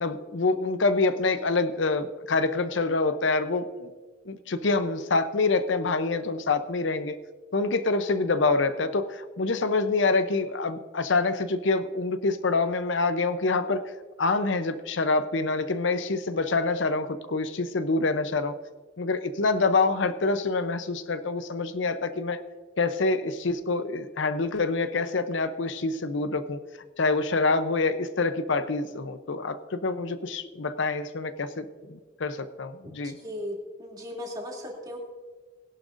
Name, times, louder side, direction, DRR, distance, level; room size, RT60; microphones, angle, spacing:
voice 1, 0.0-3.9 4.3-7.2 7.5-13.8 14.2-18.5 19.0-22.4 22.8-26.6 27.0-33.2, left 3 dB, 75° left, 11 dB, 0.7 m, -26 dB
voice 2, 33.2-35.0, left 1 dB, 20° right, -2 dB, 2.7 m, -36 dB
20.5 x 11.0 x 2.6 m, 1.4 s
head